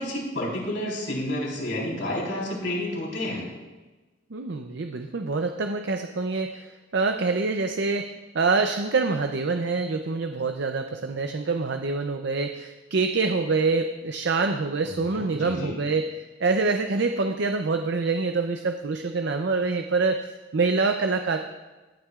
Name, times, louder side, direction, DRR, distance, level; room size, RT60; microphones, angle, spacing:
voice 1, 0.0-3.5 14.8-15.8, left 1 dB, 75° left, -4 dB, 3.9 m, -30 dB
voice 2, 4.3-16.0 16.4-21.4, right 4 dB, 65° right, 6 dB, 0.5 m, -26 dB
20.5 x 8.7 x 2.4 m, 1.2 s
head